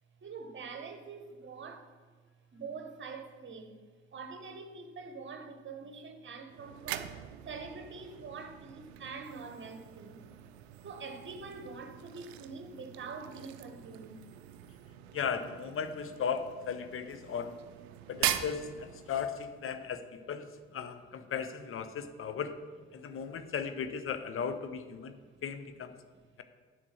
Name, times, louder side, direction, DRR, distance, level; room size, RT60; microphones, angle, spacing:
voice 1, 0.2-1.9 2.5-3.8 4.1-7.2 7.4-10.2 10.8-14.3 25.2-25.4 26.1-26.2, right 4 dB, 35° right, 1.2 m, -45 dB
sound 1, 6.5-19.5, right 12 dB, 75° right, 0.5 m, -42 dB
voice 2, 15.1-17.6 18.1-22.6 22.9-25.2 25.4-26.0, left 6 dB, 40° left, 0.8 m, -36 dB
9.8 x 6.1 x 4.4 m
figure-of-eight pair, 40°, 33 cm